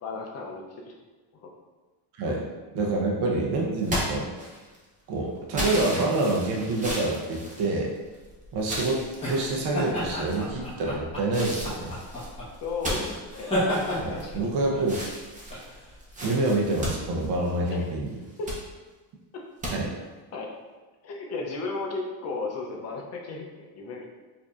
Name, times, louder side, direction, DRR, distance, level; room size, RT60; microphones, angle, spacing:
voice 1, 0.0-0.9 1.4-1.5 2.3-2.4 12.6-13.5 14.2-14.5 17.7-17.9 18.4-18.5 19.3-19.4 20.3-20.5 21.0-24.2, left 3 dB, 35° left, 0 dB, 0.5 m, -34 dB
voice 2, 2.7-4.3 5.1-7.9 8.5-12.0 14.0-15.0 16.2-18.2 19.7-19.9, right 2 dB, 60° right, -1 dB, 0.7 m, -27 dB
sound 1, 3.8-4.8 5.5-8.2 8.6-9.6 10.2-10.7 11.3-14.5 14.8-17.8 18.2-18.6 19.6-19.7, equal, 15° right, 0.6 m, -34 dB
sound 2, 8.1-17.3, equal, 15° left, 1.0 m, -33 dB
4.9 x 2.7 x 2.4 m, 1.3 s
cardioid pair, 160°, 45 cm